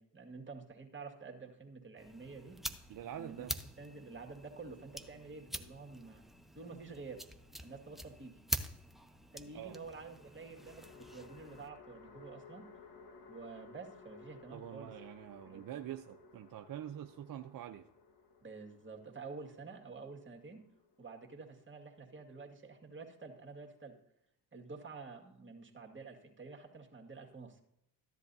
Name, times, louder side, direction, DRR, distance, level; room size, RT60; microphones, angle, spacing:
voice 1, 0.0-2.6 3.2-3.5 3.8-6.2 6.5-7.2 7.6-8.4 9.3-12.6 13.3-14.9 15.5-15.8 18.4-20.6 21.0-24.0 24.5-27.6, right 4 dB, 25° right, 1 dB, 2.1 m, -49 dB
sound 1, 2.0-11.7, equal, ahead, 0.8 m, -45 dB
voice 2, 2.9-3.5 9.5-9.8 14.5-17.8, right 11 dB, 45° right, 6 dB, 0.7 m, -45 dB
sound 2, 7.0-7.9 10.1-21.5, left 4 dB, 50° left, 1.7 m, -58 dB
14.0 x 10.5 x 2.7 m, 0.78 s
hypercardioid pair, 60°, 48 cm